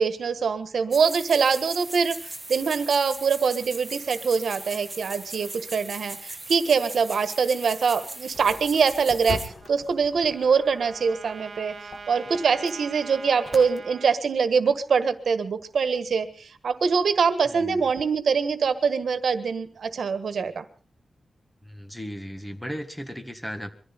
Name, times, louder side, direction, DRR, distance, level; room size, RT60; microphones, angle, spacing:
voice 1, 0.0-20.6, right 5 dB, 80° right, 11 dB, 1.4 m, -24 dB
sound 1, 0.9-9.5, right 2 dB, 15° right, 1.7 m, -38 dB
sound 2, 8.3-13.8, left 3 dB, 40° left, 1.6 m, -42 dB
Trumpet, 9.6-14.1, right 4 dB, 50° right, 1.6 m, -43 dB
voice 2, 17.5-17.9 21.6-23.7, equal, 5° left, 7 dB, 1.8 m, -36 dB
23.0 x 14.5 x 4.1 m, 0.39 s
wide cardioid pair, 155°, 0 cm